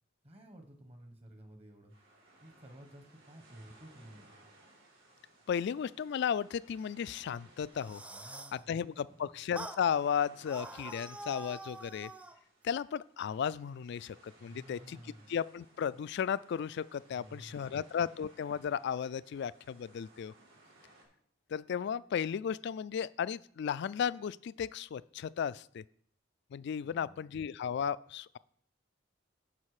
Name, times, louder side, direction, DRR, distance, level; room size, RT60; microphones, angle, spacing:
voice 1, 0.2-1.9 2.4-4.3 8.1-9.2 14.4-15.3 17.1-17.8 26.8-27.3, right 1 dB, 30° right, 5 dB, 1.1 m, -54 dB
sound 1, 1.9-21.1, right 2 dB, 75° right, 4.6 m, -62 dB
voice 2, 5.5-8.0 8.5-12.1 12.6-15.0 15.3-20.3 21.5-25.8 26.5-28.4, left 7 dB, 60° left, 19 dB, 0.3 m, -35 dB
sound 2, 7.6-8.6 9.6-9.8 10.5-12.4, right 1 dB, 5° right, 0.5 m, -45 dB
9.7 x 6.7 x 4.9 m, 0.64 s
head